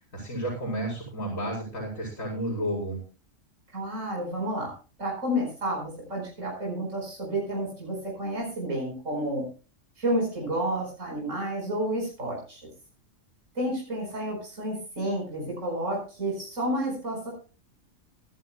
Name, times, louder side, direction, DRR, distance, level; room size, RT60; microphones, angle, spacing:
voice 1, 0.1-3.0, right 1 dB, 85° left, -3 dB, 5.3 m, -31 dB
voice 2, 3.7-4.7 5.0-9.5 10.0-12.6 13.6-17.3, right 1 dB, 70° right, -1 dB, 5.2 m, -30 dB
24.5 x 11.5 x 2.2 m, 0.35 s
omnidirectional pair, 1.3 m